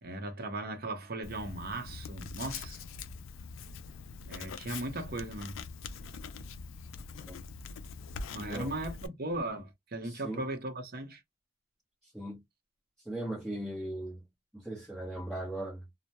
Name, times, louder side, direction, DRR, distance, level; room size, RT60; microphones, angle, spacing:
voice 1, 0.0-2.8 4.2-5.6 8.3-11.2, right 2 dB, 50° right, 0.7 m, -37 dB
Writing, 1.2-9.1, left 4 dB, 80° left, 0.4 m, -43 dB
voice 2, 8.4-8.7 10.0-10.4 12.0-12.4 13.0-14.2 14.5-15.8, right 1 dB, ahead, 0.8 m, -38 dB
2.1 x 2.1 x 2.8 m
head